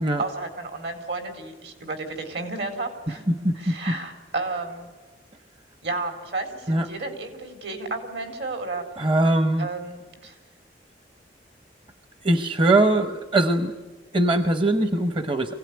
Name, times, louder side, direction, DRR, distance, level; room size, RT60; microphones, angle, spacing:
voice 1, 0.2-3.2 3.5-4.9 5.8-8.8 9.6-10.4, right 3 dB, 70° right, 6 dB, 4.2 m, -32 dB
voice 2, 3.3-3.9 6.7-6.9 9.0-9.7 12.2-13.7 14.1-15.5, right 1 dB, 30° right, 8 dB, 0.9 m, -21 dB
25.5 x 17.0 x 9.6 m, 1.3 s
head